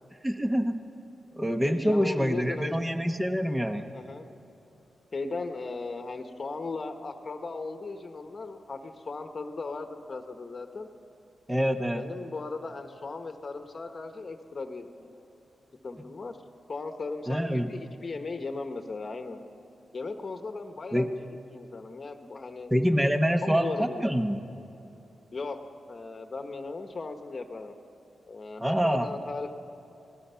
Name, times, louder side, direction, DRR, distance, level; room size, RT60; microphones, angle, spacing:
voice 1, 0.2-0.8 1.3-3.9 11.5-12.0 17.3-17.7 20.9-21.1 22.7-24.4 28.6-29.1, equal, 10° right, 6 dB, 1.0 m, -26 dB
voice 2, 1.6-2.8 3.9-4.3 5.1-10.9 11.9-15.3 15.8-16.4 16.7-19.4 19.9-21.1 21.5-22.7 23.4-24.2 25.3-25.6 25.9-27.7 28.3-29.5, left 3 dB, 35° left, 6 dB, 1.2 m, -37 dB
28.5 x 20.0 x 5.7 m, 2.9 s
wide cardioid pair, 135°, 0 cm